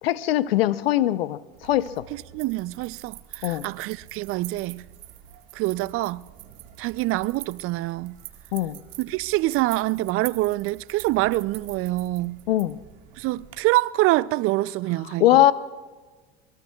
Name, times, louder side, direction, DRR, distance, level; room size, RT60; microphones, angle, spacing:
voice 1, 0.0-2.1 3.4-3.6 8.5-8.8 12.5-12.8 15.2-15.5, left 14 dB, 85° left, 0.7 m, -21 dB
sound 1, 1.5-13.6, right 13 dB, 65° right, 1.7 m, -45 dB
voice 2, 2.1-4.8 5.5-6.2 6.8-8.2 9.0-12.4 13.2-15.3, right 18 dB, 50° right, 0.5 m, -25 dB
23.0 x 22.5 x 2.3 m
hypercardioid pair, 90°, 29 cm